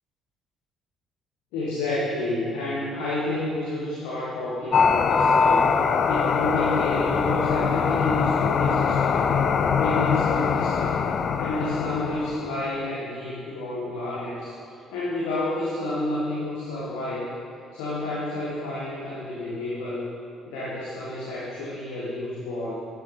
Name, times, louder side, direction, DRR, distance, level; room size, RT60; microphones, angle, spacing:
voice 1, 1.5-5.7 6.1-9.4 9.8-11.0 11.4-14.5 14.9-17.3 17.7-20.1 20.5-22.7, left 2 dB, 65° left, -7 dB, 1.7 m, -29 dB
sound 1, 4.7-12.7, left 6 dB, 50° left, 0.4 m, -23 dB
11.5 x 8.0 x 3.9 m, 2.6 s
figure-of-eight pair, 45°, 0 cm